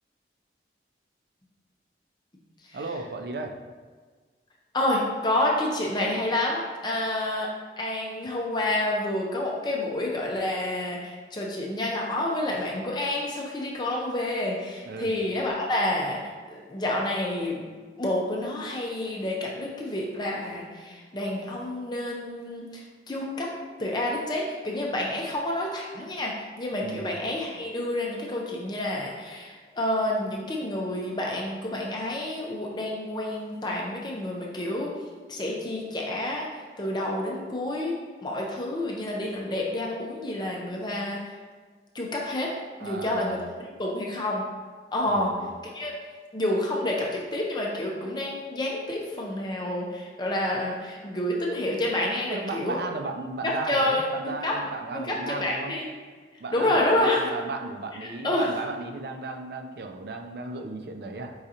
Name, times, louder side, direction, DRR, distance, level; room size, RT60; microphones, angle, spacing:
voice 1, 2.7-3.6 14.8-15.1 26.8-27.1 42.8-43.4 45.1-45.5 52.3-55.8 56.4-61.3, right 3 dB, 60° right, 5 dB, 0.4 m, -35 dB
voice 2, 4.7-7.5 7.8-16.2 16.5-17.6 18.0-23.5 23.8-26.3 26.6-34.9 35.3-37.9 38.2-41.3 41.9-42.5 42.8-44.4 44.9-45.3 45.7-45.9 46.3-52.8 53.4-54.6 54.9-55.9 56.5-57.3 58.0-58.5, left 1 dB, 25° left, -2 dB, 0.6 m, -29 dB
4.7 x 3.8 x 2.8 m, 1.5 s
head